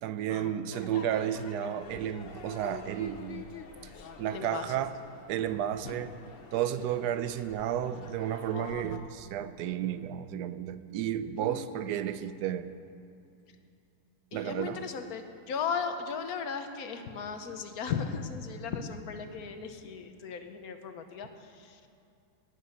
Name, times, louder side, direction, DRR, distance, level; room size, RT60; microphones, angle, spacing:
voice 1, 0.0-3.5 4.2-4.9 5.3-6.2 6.5-12.7 14.3-14.8, right 10 dB, 80° right, 12 dB, 1.2 m, -32 dB
Crowd / Fireworks, 0.7-9.0, left 5 dB, 50° left, 0.7 m, -47 dB
voice 2, 4.2-4.7 8.5-9.1 11.4-11.9 14.3-21.9, left 6 dB, 65° left, 7 dB, 1.3 m, -37 dB
17.5 x 7.4 x 6.6 m, 2.6 s
omnidirectional pair, 1.7 m